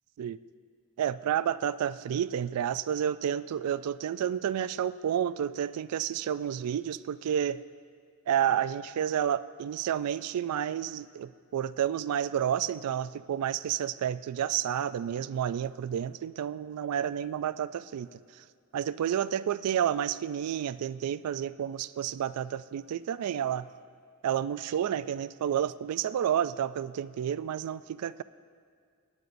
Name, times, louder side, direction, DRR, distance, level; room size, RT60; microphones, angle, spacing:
voice 1, 1.0-7.6 8.3-18.1 18.7-23.7 24.2-28.2, right 9 dB, 80° right, 16 dB, 0.3 m, -30 dB
18.0 x 9.4 x 2.6 m, 2.2 s
head